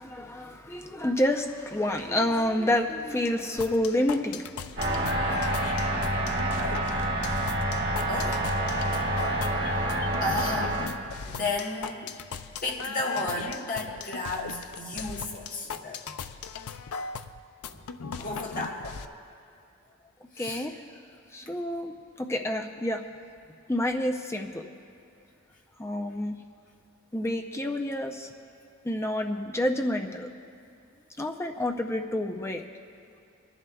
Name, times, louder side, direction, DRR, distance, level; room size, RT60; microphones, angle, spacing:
voice 1, 0.0-5.3 20.4-20.8 21.3-23.0 23.7-24.6 25.8-26.4 27.1-28.3 28.8-30.3 31.2-32.6, left 1 dB, 10° left, 3 dB, 0.5 m, -29 dB
sound 1, 3.6-19.1, left 5 dB, 85° left, 0.5 m, -38 dB
sound 2, 4.8-10.9, right 1 dB, 50° right, 1.6 m, -28 dB
voice 2, 8.1-8.5 9.6-9.9 10.2-10.9 11.3-12.2 12.6-16.0 17.6-17.9 18.2-19.0 20.3-20.7, left 2 dB, 40° left, -1 dB, 1.3 m, -33 dB
29.0 x 11.0 x 2.3 m, 2.4 s
head